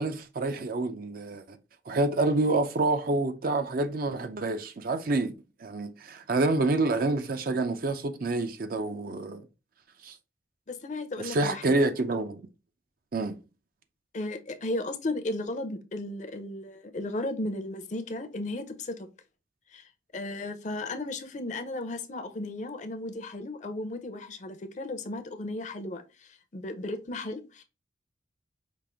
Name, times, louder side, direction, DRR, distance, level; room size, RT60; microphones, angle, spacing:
voice 1, 0.0-1.6 1.9-5.3 5.6-9.4 10.0-10.2 11.2-12.4 13.1-13.4, right 2 dB, 50° right, 0.5 m, -27 dB
voice 2, 10.7-11.8 14.1-19.1 19.7-27.6, left 2 dB, 40° left, 0.6 m, -35 dB
5.1 x 2.5 x 3.5 m
head